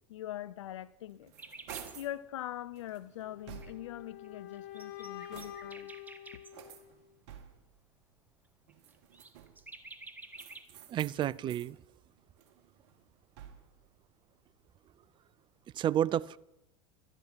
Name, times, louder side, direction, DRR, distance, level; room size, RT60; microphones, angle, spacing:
voice 1, 0.1-1.3 2.0-5.9, left 13 dB, 75° left, 0.5 m, -42 dB
sound 1, 0.9-2.2 2.8-4.0 4.6-5.9 6.5-7.8 8.7-9.7 10.3-11.7 12.2-13.8, right 9 dB, 60° right, 1.7 m, -51 dB
sound 2, 1.4-2.0 3.6-3.7 4.2-4.3 4.5-6.6 8.7-10.6, right 2 dB, 10° right, 1.3 m, -50 dB
sound 3, 3.2-7.2, left 11 dB, 50° left, 1.7 m, -47 dB
voice 2, 10.9-11.8 15.7-16.4, right 11 dB, 30° right, 0.4 m, -30 dB
12.5 x 11.0 x 5.8 m
hypercardioid pair, 90°, 16 cm